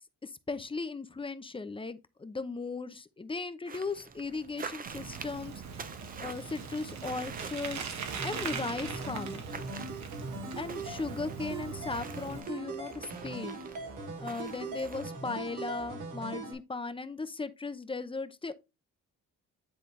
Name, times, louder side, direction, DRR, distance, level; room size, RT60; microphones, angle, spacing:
voice 1, 0.2-5.9 6.2-9.5 10.6-13.6 14.2-18.5, left 3 dB, 15° left, 0.7 m, -37 dB
sound 1, 3.7-15.2, right 5 dB, 30° right, 0.7 m, -47 dB
Bicycle, 4.9-12.4, right 6 dB, 65° right, 1.5 m, -41 dB
sound 2, 8.1-16.5, right 3 dB, 90° right, 2.6 m, -41 dB
10.0 x 3.9 x 3.2 m
cardioid pair, 90°, 30 cm